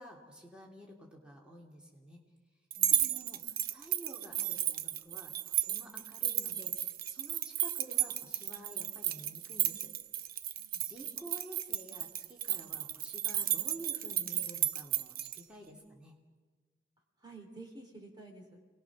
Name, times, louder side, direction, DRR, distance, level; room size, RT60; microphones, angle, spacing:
voice 1, 0.0-2.2 2.9-9.9 10.8-16.2, right 1 dB, 5° right, -2 dB, 3.0 m, -51 dB
voice 2, 2.7-3.2 10.6-10.9 17.2-18.4, right 2 dB, 25° right, 2 dB, 2.9 m, -51 dB
sound 1, 2.7-15.4, right 12 dB, 55° right, 0.6 m, -33 dB
28.5 x 20.0 x 6.2 m, 1.4 s
head